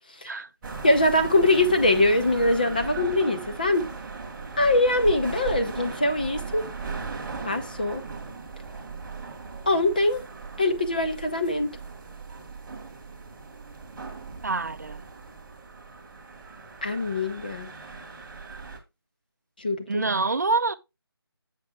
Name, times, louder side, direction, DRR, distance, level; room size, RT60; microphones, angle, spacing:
sound 1, 0.6-18.8, right 4 dB, 5° right, 1.0 m, -38 dB
voice 1, 0.8-3.9 4.6-6.6 7.4-8.0 9.7-10.2 10.6-11.8 16.8-17.7 19.6-20.1, left 2 dB, 20° left, 0.6 m, -23 dB
voice 2, 14.4-15.0 19.9-20.8, right 3 dB, 45° right, 0.5 m, -26 dB
7.5 x 6.6 x 3.5 m
figure-of-eight pair, 170°, 13 cm